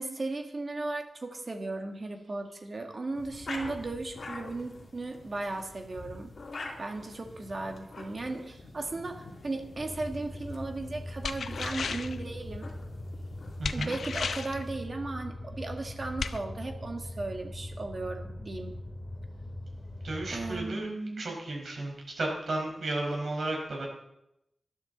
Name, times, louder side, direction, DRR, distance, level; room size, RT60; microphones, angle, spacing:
voice 1, 0.0-6.3 6.8-12.7 13.7-18.8 20.3-21.3, right 2 dB, 35° right, 3 dB, 1.9 m, -36 dB
sound 1, 3.1-14.9, left 2 dB, 50° left, 2.7 m, -46 dB
sound 2, 9.7-20.6, left 1 dB, 35° left, 2.5 m, -41 dB
sound 3, 11.2-12.2 13.6-14.6 16.2-16.4, left 5 dB, 85° left, 0.7 m, -34 dB
voice 2, 13.6-14.0 20.0-20.9 21.2-23.9, right 2 dB, 60° right, 0 dB, 4.9 m, -33 dB
19.5 x 12.0 x 4.0 m, 0.84 s
wide cardioid pair, 150°, 0 cm